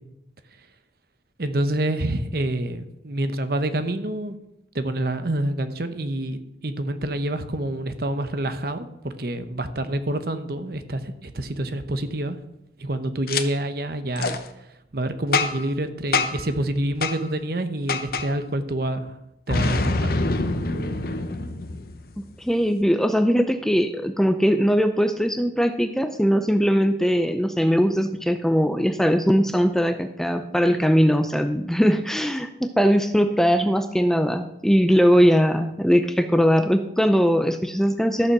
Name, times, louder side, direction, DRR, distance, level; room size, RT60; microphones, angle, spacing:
voice 1, 1.4-4.4 4.7-12.4 12.8-14.4 14.9-19.2 19.5-20.1, right 1 dB, 55° right, 10 dB, 0.9 m, -27 dB
Boom, 13.3-13.4 14.2-14.4 15.3-15.7 16.1-16.5 17.0-17.2 17.9-18.3 19.5-22.2, left 3 dB, 55° left, 0.9 m, -25 dB
voice 2, 22.4-38.3, equal, ahead, 8 dB, 0.5 m, -20 dB
13.5 x 6.9 x 6.1 m, 0.86 s
head